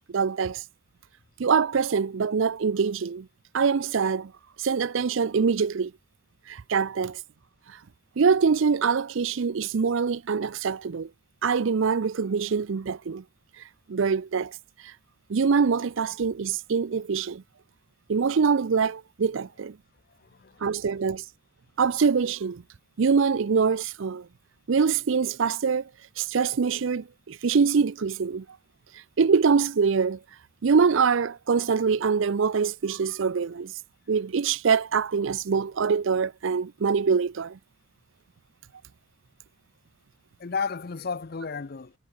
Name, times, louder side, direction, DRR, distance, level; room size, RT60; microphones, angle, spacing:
voice 1, 0.1-0.6 1.4-3.3 3.5-4.3 4.6-5.9 6.5-7.2 8.2-11.1 11.4-13.2 13.9-14.6 15.3-17.4 18.1-19.8 20.6-21.2 21.8-22.6 23.0-24.3 24.7-25.8 26.2-28.4 29.2-30.2 30.6-33.7 34.1-37.6, right 5 dB, 65° right, 0.5 m, -24 dB
voice 2, 20.2-20.9 40.4-41.9, left 5 dB, 45° left, 0.5 m, -33 dB
head